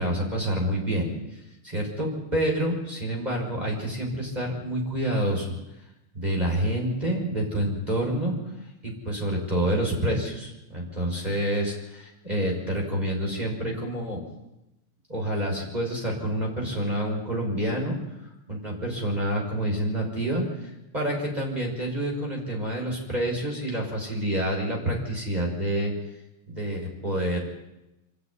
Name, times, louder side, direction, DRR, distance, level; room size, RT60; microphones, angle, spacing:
voice 1, 0.0-5.5 6.1-8.3 8.8-14.2 15.1-25.9 26.5-27.4, right 1 dB, 20° right, -1 dB, 5.7 m, -28 dB
26.5 x 11.5 x 9.8 m, 0.95 s
omnidirectional pair, 2.4 m